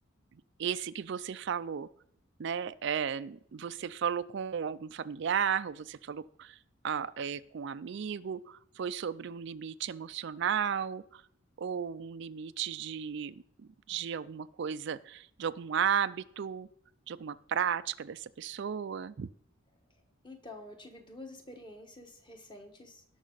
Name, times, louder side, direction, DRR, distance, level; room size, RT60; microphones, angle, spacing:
voice 1, 0.6-1.9 2.4-6.6 6.8-11.2 11.6-13.3 13.9-16.7 17.1-19.3, right 7 dB, 60° right, 13 dB, 0.4 m, -34 dB
voice 2, 20.2-23.0, left 2 dB, 25° left, 4 dB, 1.4 m, -48 dB
18.0 x 6.1 x 4.0 m, 0.66 s
head